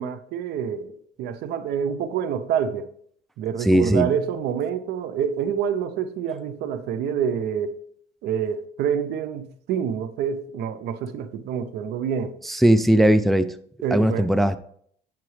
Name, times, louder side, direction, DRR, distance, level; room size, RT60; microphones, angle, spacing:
voice 1, 0.0-2.9 3.4-7.8 8.2-12.4 13.8-14.3, right 8 dB, 80° right, 0.6 m, -27 dB
voice 2, 3.6-4.1 12.4-13.5 13.9-14.6, right 1 dB, ahead, 0.3 m, -18 dB
8.6 x 5.9 x 3.2 m
cardioid pair, 110°, 17 cm